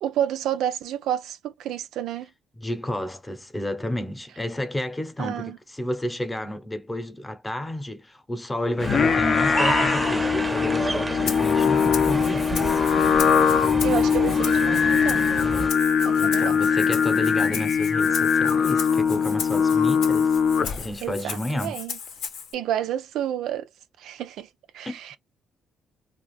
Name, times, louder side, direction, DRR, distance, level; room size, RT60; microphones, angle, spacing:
voice 1, 0.0-2.3 5.2-5.6 13.5-15.5 16.0-16.6 21.0-22.0 22.5-23.7 24.0-24.5 24.7-25.2, right 11 dB, 85° right, 0.3 m, -30 dB
voice 2, 2.6-12.8 16.2-20.4 20.8-21.8 24.9-25.0, left 1 dB, 15° left, 0.7 m, -31 dB
Singing, 8.8-21.0, left 6 dB, 55° left, 0.5 m, -21 dB
sound 1, 8.8-15.7, right 2 dB, 15° right, 0.6 m, -29 dB
Rattle (instrument), 11.3-22.5, left 7 dB, 90° left, 1.0 m, -37 dB
2.5 x 2.3 x 3.2 m
cardioid pair, 90°, 0 cm